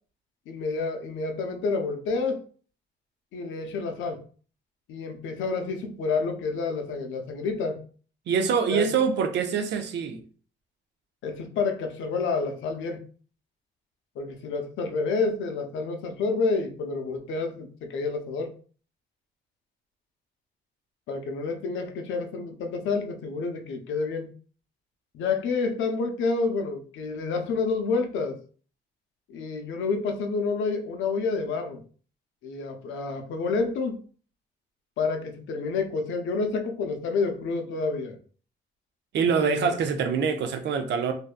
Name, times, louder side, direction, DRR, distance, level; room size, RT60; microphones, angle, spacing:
voice 1, 0.5-2.4 3.3-4.2 4.9-7.8 8.7-9.0 11.2-13.0 14.2-18.5 21.1-24.3 25.1-28.4 29.3-31.8 32.4-34.0 35.0-38.2 39.4-39.8, left 4 dB, 75° left, 0.5 m, -29 dB
voice 2, 8.3-10.2 39.1-41.1, right 6 dB, 65° right, 0.5 m, -25 dB
2.6 x 2.2 x 2.4 m
cardioid pair, 90°, 20 cm